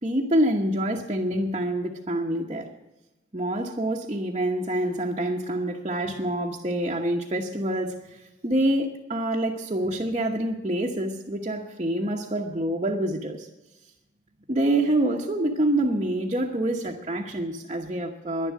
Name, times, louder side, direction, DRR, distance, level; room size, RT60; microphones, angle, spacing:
voice 1, 0.0-2.7 3.3-13.5 14.5-18.5, right 1 dB, 35° right, -2 dB, 1.0 m, -26 dB
11.0 x 11.0 x 8.2 m, 1.0 s
head